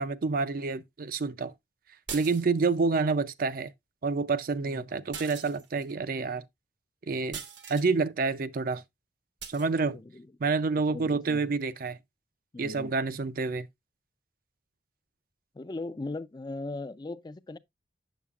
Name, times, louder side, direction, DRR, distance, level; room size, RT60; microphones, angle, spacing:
voice 1, 0.0-1.5 2.1-3.7 4.0-6.4 7.1-7.4 7.7-8.8 9.5-10.0 10.4-12.0 12.6-13.7, right 4 dB, 50° right, 0.4 m, -28 dB
sound 1, 2.1-2.8 5.1-5.9 7.3-7.9 9.4-9.7, right 7 dB, 85° right, 1.2 m, -41 dB
voice 2, 9.9-10.3 10.9-11.5 12.5-12.9 15.5-17.6, left 2 dB, 25° left, 0.4 m, -39 dB
7.2 x 7.1 x 2.4 m
head